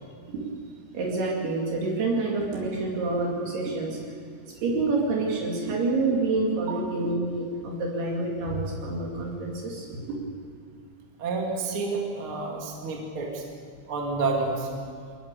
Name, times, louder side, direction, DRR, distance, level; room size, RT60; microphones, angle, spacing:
voice 1, 0.9-10.2, right 3 dB, 70° right, -3 dB, 4.5 m, -28 dB
voice 2, 11.2-13.5 13.9-14.7, right 3 dB, 35° right, -1 dB, 2.8 m, -29 dB
23.0 x 20.0 x 6.9 m, 2.1 s
omnidirectional pair, 4.8 m